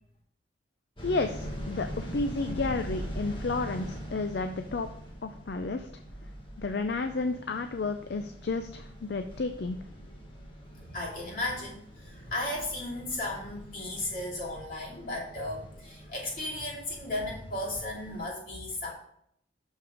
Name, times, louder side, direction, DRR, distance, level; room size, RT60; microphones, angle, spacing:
voice 1, 1.0-4.9 5.2-5.9 6.6-9.8, left 3 dB, 65° left, 8 dB, 0.5 m, -31 dB
sound 1, 1.0-18.3, equal, 25° left, 1.3 m, -43 dB
voice 2, 10.7-18.9, left 1 dB, 45° left, -5 dB, 2.8 m, -35 dB
6.5 x 5.8 x 5.1 m, 0.71 s
head